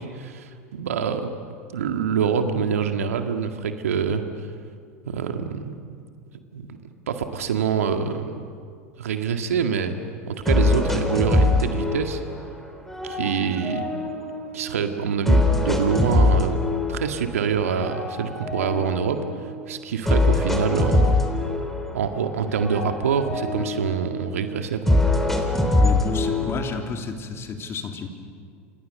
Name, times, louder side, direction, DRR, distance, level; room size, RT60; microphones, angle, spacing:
voice 1, 0.0-1.3 1.7-4.2 5.0-5.7 6.5-6.8 7.1-8.4 9.0-10.0 10.3-12.2 13.0-13.9 14.5-16.6 16.9-19.2 19.7-21.2 21.9-25.0, right 6 dB, 75° right, 6 dB, 2.0 m, -25 dB
sound 1, 9.8-9.9 10.5-12.5 12.9-14.7 15.3-17.2 17.7-19.5 20.1-22.2 22.5-24.2 24.9-26.8, left 2 dB, 5° left, 3.7 m, -23 dB
voice 2, 25.8-28.1, left 4 dB, 35° left, 4 dB, 3.4 m, -31 dB
29.0 x 27.0 x 6.8 m, 2.2 s
hypercardioid pair, 85°, 8 cm